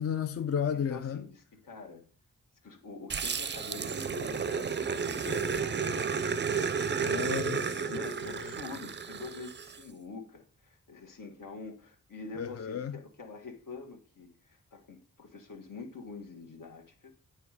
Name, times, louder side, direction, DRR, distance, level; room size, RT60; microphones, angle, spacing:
voice 1, 0.0-1.2 7.0-7.9 8.3-8.5 12.4-12.9, left 8 dB, 50° left, 0.5 m, -33 dB
voice 2, 0.7-2.1 2.6-5.9 7.7-17.1, left 4 dB, 75° left, 1.6 m, -45 dB
Growling, 3.1-9.8, right 5 dB, 35° right, 0.4 m, -32 dB
9.1 x 4.7 x 4.9 m
wide cardioid pair, 80°, 33 cm